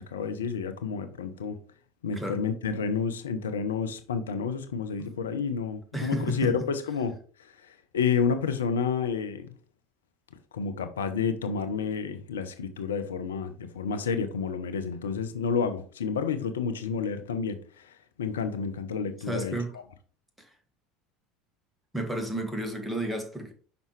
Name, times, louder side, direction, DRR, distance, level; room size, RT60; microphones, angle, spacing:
voice 1, 0.0-1.6 2.0-9.5 10.5-19.5, left 6 dB, 80° left, 0.6 m, -30 dB
voice 2, 5.9-6.5 19.3-19.7 20.4-20.5 21.9-23.5, right 1 dB, 5° right, 1.6 m, -31 dB
5.9 x 5.4 x 3.1 m
hypercardioid pair, 70°, 0 cm